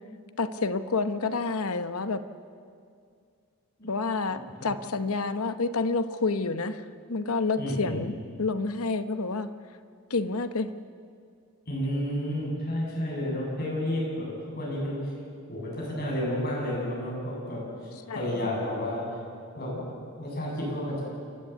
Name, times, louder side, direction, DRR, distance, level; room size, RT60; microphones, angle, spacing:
voice 1, 0.4-2.2 3.9-6.8 7.1-8.1 8.4-9.5 10.1-10.7 18.1-18.5, left 3 dB, 80° left, 11 dB, 1.0 m, -29 dB
voice 2, 7.6-8.0 11.7-15.1 15.5-19.2 19.6-21.0, left 1 dB, 45° left, -4 dB, 7.9 m, -31 dB
29.0 x 13.0 x 8.3 m, 2.3 s
head